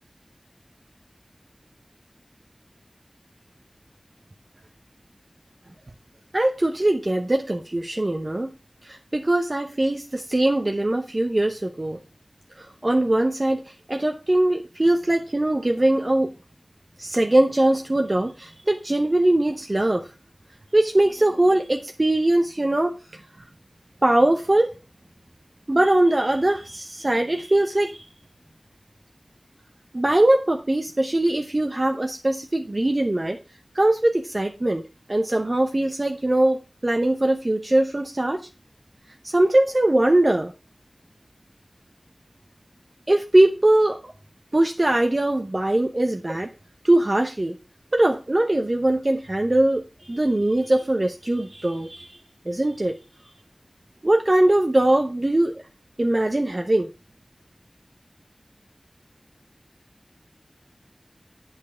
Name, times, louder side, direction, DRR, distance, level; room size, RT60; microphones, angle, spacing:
voice 1, 6.3-8.5 8.9-12.0 12.8-13.6 13.9-16.3 17.0-20.0 20.7-22.9 24.0-24.7 25.7-28.0 29.9-33.4 33.7-34.8 35.1-38.4 39.3-40.5 43.1-44.1 44.5-46.5 46.8-47.5 47.9-52.1 52.5-52.9 54.0-55.5 56.0-56.9, right 1 dB, 40° right, 4 dB, 0.8 m, -21 dB
8.5 x 5.3 x 5.0 m, 0.31 s
wide cardioid pair, 55°, 0 cm